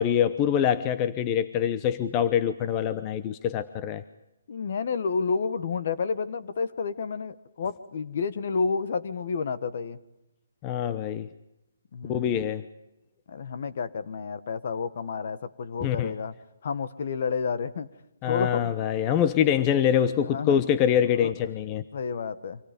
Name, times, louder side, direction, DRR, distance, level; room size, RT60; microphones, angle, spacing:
voice 1, 0.0-4.0 10.6-11.3 12.1-12.6 15.8-16.1 18.2-21.8, left 9 dB, 20° left, 11 dB, 0.8 m, -25 dB
voice 2, 4.5-10.0 11.9-12.3 13.3-16.3 16.6-17.9 18.3-18.7 19.1-19.3 20.3-20.6 21.2-21.3 21.9-22.6, left 5 dB, 50° left, 12 dB, 1.5 m, -30 dB
28.5 x 25.5 x 5.3 m, 0.91 s
hypercardioid pair, 165°, 0 cm